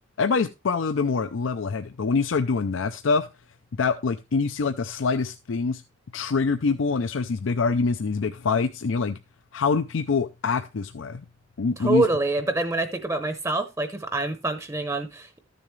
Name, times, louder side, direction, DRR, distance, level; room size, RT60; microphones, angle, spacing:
voice 1, 0.2-3.3 3.7-5.8 6.1-9.2 9.5-11.2 11.6-12.0, left 4 dB, 80° left, 0.5 m, -25 dB
voice 2, 11.8-15.4, right 2 dB, 15° right, 0.7 m, -26 dB
13.5 x 6.9 x 3.2 m
head